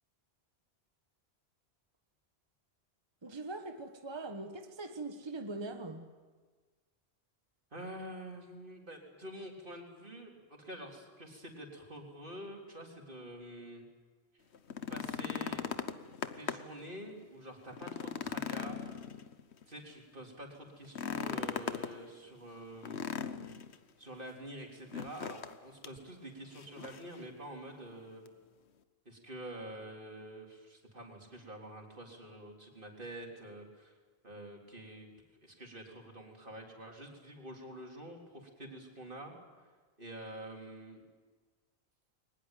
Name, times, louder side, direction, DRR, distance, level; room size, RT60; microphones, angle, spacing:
voice 1, 3.2-6.1, right 2 dB, 25° right, 1.2 m, -42 dB
voice 2, 7.7-13.8 14.9-15.7 16.4-18.8 19.7-23.1 24.0-28.2 29.1-33.9 34.2-35.1 35.4-39.7 40.0-41.0, right 1 dB, 55° right, 4.1 m, -47 dB
sound 1, 14.5-16.8 17.2-17.3 17.7-19.6 20.8-21.9 22.8-23.7 24.9-25.6 25.8-26.0 26.5-27.1 28.3-28.4, left 7 dB, 85° left, 1.2 m, -38 dB
22.5 x 19.5 x 9.2 m
omnidirectional pair, 1.1 m